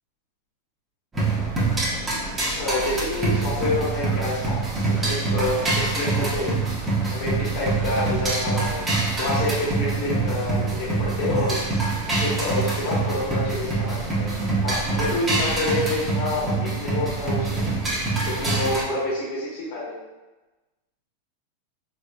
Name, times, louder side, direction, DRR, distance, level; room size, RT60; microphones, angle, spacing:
sound 1, 1.1-18.8, right 3 dB, 15° right, 0.9 m, -25 dB
voice 1, 2.5-4.6 4.9-6.5 7.1-8.8 9.2-11.6 12.2-14.3 14.6-17.6 18.2-20.0, left 2 dB, 65° left, -7 dB, 1.3 m, -28 dB
3.7 x 3.2 x 2.2 m, 1.1 s
supercardioid pair, 140°, 0 cm